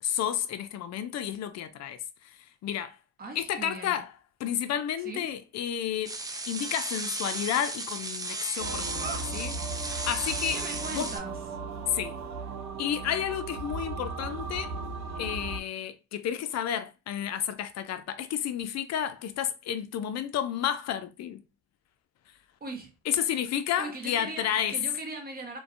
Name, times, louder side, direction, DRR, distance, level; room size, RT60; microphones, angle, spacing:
voice 1, 0.0-3.0 3.4-4.1 4.4-6.2 6.5-9.0 9.3-10.6 10.9-11.1 11.9-12.2 12.8-14.7 15.2-21.4 23.1-24.8, left 10 dB, 60° left, 0.4 m, -31 dB
voice 2, 3.2-4.0 5.0-5.2 9.0-9.4 10.5-11.4 22.6-22.9 23.8-25.6, right 3 dB, 30° right, 0.9 m, -39 dB
sound 1, 6.0-11.2, right 2 dB, 15° right, 0.3 m, -35 dB
sound 2, 8.6-15.6, right 4 dB, 65° right, 0.6 m, -37 dB
2.5 x 2.2 x 2.4 m
cardioid pair, 90°, 30 cm